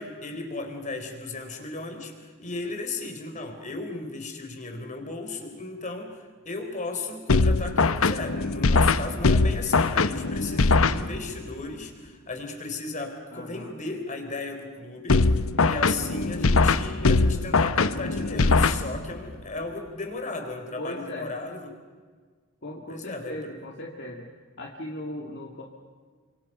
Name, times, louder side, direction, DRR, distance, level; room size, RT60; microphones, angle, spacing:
voice 1, 0.0-21.7 22.9-23.4, left 3 dB, 35° left, 5 dB, 3.9 m, -35 dB
sound 1, 7.3-11.5 15.1-19.3, left 3 dB, 75° left, 0.9 m, -22 dB
voice 2, 13.3-13.7 20.8-21.3 22.6-24.3 24.6-25.6, left 1 dB, 55° left, 0 dB, 2.4 m, -37 dB
29.5 x 26.5 x 5.6 m, 1.5 s
head